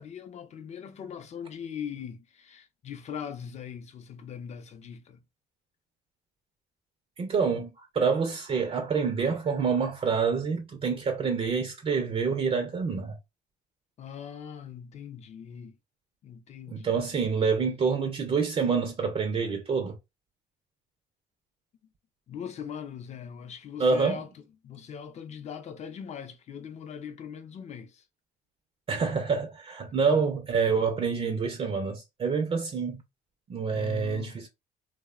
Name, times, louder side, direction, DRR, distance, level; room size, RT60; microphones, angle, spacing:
voice 1, 0.0-5.2 14.0-15.7 16.2-17.0 22.3-24.3 24.6-28.0 30.1-30.2 33.7-34.4, left 8 dB, 40° left, 0.5 m, -41 dB
voice 2, 7.2-13.2 16.7-20.0 23.8-24.2 28.9-33.0 33.5-34.5, right 5 dB, 35° right, 0.4 m, -27 dB
2.7 x 2.0 x 2.3 m
cardioid pair, 110°, 17 cm